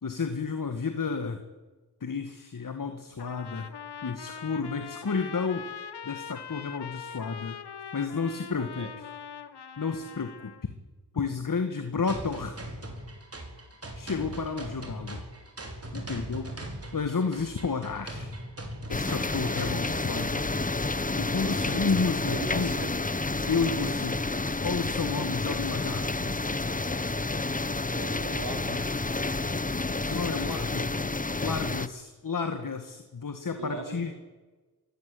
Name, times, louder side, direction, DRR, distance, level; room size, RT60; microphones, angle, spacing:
voice 1, 0.0-1.4 2.0-3.7 4.0-5.7 6.0-7.6 7.9-9.1 9.8-10.7 11.1-12.5 14.0-15.2 15.9-16.6 16.9-18.3 18.9-20.5 21.2-22.8 23.5-24.2 24.6-26.3 30.0-30.9 31.4-34.1, left 5 dB, 50° left, 7 dB, 2.0 m, -31 dB
Trumpet, 3.2-10.7, left 7 dB, 70° left, 1.4 m, -42 dB
sound 1, 12.1-20.1, right 1 dB, 35° right, 4.9 m, -40 dB
sound 2, 18.9-31.9, left 3 dB, 20° left, 1.1 m, -30 dB
voice 2, 21.4-22.0 22.3-22.9 27.9-29.1 33.6-34.1, right 3 dB, 70° right, 3 dB, 5.0 m, -40 dB
22.0 x 17.5 x 8.6 m, 1.2 s
cardioid pair, 60°, 41 cm